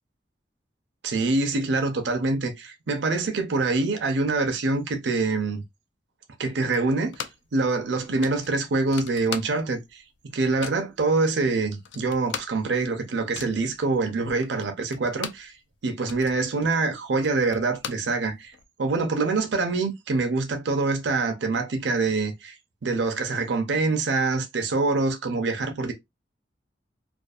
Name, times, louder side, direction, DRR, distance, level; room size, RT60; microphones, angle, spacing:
voice 1, 1.0-5.6 6.4-7.2 7.5-10.0 10.3-15.5 15.8-18.5 18.8-22.5 22.8-25.9, right 3 dB, 85° right, 0.5 m, -25 dB
sound 1, 6.7-7.6 7.8-7.9 8.2-9.9 10.2-10.9 11.4-11.5 11.7-15.5 15.9-18.6, left 7 dB, 85° left, 0.4 m, -39 dB
2.5 x 2.3 x 2.3 m
head